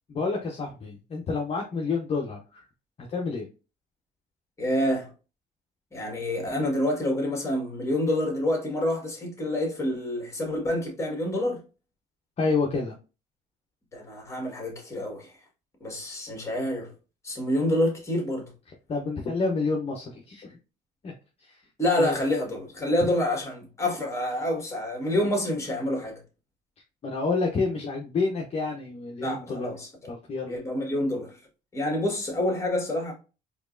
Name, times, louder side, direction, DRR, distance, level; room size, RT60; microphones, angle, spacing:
voice 1, 0.1-2.6 3.0-3.5 12.4-12.9 18.9-20.6 21.0-21.1 21.5-21.6 22.0-22.2 27.0-29.7 30.1-30.5, left 4 dB, 35° left, 0.8 m, -29 dB
voice 2, 4.6-5.1 5.9-11.6 13.9-15.3 15.8-16.9 17.2-18.5 21.8-26.2 29.2-30.1 30.5-31.4 31.7-33.1, left 1 dB, 15° left, 1.8 m, -27 dB
4.3 x 3.0 x 2.5 m
cardioid pair, 110°, 17 cm